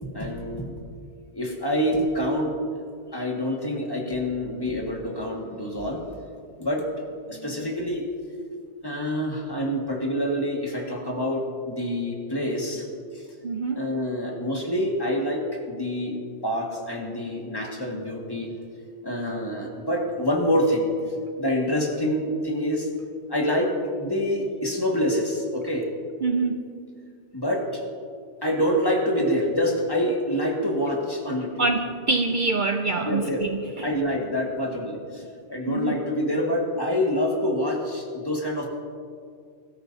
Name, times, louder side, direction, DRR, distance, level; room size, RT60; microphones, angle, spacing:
voice 1, 0.0-0.7 1.3-2.5 3.1-6.1 6.6-6.9 7.3-8.0 8.8-12.9 13.1-13.2 13.7-18.5 19.0-20.9 21.4-22.9 23.3-25.9 27.3-27.8 28.4-31.6 33.1-33.4 33.8-35.2 35.5-38.7, equal, 20° left, -1 dB, 1.9 m, -26 dB
voice 2, 13.4-13.9 26.2-26.6 31.6-33.9 35.7-36.0, right 3 dB, 50° right, 4 dB, 0.7 m, -25 dB
22.0 x 13.5 x 2.7 m, 2.2 s
omnidirectional pair, 1.2 m